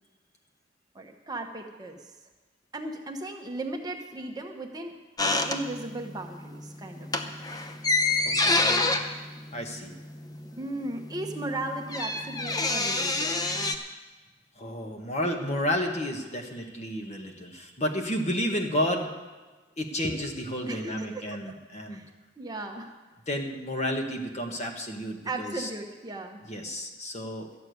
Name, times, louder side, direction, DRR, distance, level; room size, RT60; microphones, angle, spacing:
voice 1, 0.9-2.1 2.7-4.9 5.5-7.2 10.6-13.5 20.7-21.6 21.9-22.1 22.4-22.9 25.2-26.4, right 2 dB, 20° right, 3 dB, 1.0 m, -36 dB
sound 1, 5.2-6.1 6.4-6.6 7.0-10.5 10.8-10.9 11.0-13.8, left 2 dB, 20° left, 0.8 m, -27 dB
voice 2, 8.2-9.0 9.5-9.9 14.6-19.1 19.8-22.0 23.3-25.7 26.5-27.5, equal, 40° left, 3 dB, 1.5 m, -31 dB
13.0 x 6.7 x 9.4 m, 1.3 s
head